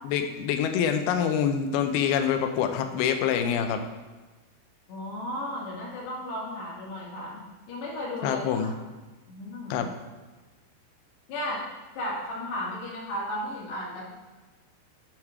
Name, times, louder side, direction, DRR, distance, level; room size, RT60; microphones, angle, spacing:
voice 1, 0.0-3.8 8.2-8.7 9.7-9.9, left 8 dB, 85° left, 6 dB, 2.2 m, -26 dB
voice 2, 4.9-8.7 9.3-9.8 11.3-11.7 12.0-14.1, left 1 dB, 70° left, -4 dB, 4.0 m, -34 dB
7.3 x 6.5 x 4.6 m, 1.2 s
omnidirectional pair, 5.2 m